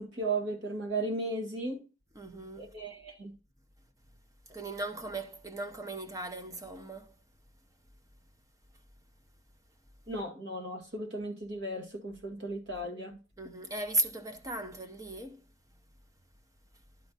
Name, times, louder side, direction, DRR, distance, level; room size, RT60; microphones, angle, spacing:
voice 1, 0.0-1.8 2.6-3.3 10.1-13.2, right 2 dB, 60° right, 2.1 m, -35 dB
voice 2, 2.1-2.7 4.5-7.1 13.4-15.4, right 1 dB, 15° right, 0.7 m, -36 dB
11.0 x 4.5 x 4.0 m
head